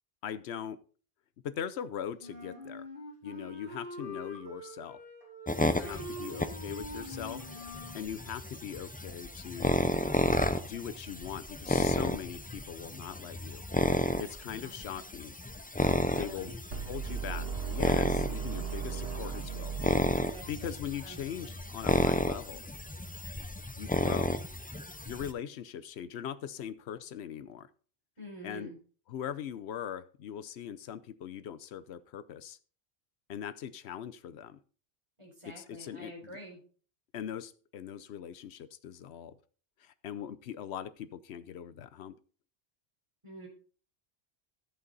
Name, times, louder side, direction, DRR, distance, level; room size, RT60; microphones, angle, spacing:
voice 1, 0.2-0.8 1.4-2.9 3.2-5.0 5.7-7.4 7.9-9.7 10.6-13.6 14.2-15.3 16.1-16.5 16.9-19.8 20.5-22.6 23.8-24.4 25.0-27.7 28.4-28.7 29.1-32.6 33.3-34.6 35.5-36.4 37.1-39.4 39.8-42.1, left 9 dB, 85° left, 15 dB, 1.0 m, -41 dB
Wind instrument woodwind instrument, 2.2-8.0, left 1 dB, 55° left, 3.4 m, -44 dB
sound 1, 5.5-25.3, left 1 dB, 10° left, 0.4 m, -32 dB
voice 2, 5.7-6.1 15.8-16.6 20.2-20.7 21.0-21.2 28.2-28.8 35.2-36.6 43.2-43.5, equal, 30° right, -1 dB, 4.4 m, -47 dB
sound 2, 16.7-20.7, right 6 dB, 70° right, 1.8 m, -37 dB
11.0 x 8.1 x 3.9 m, 0.41 s
omnidirectional pair, 1.1 m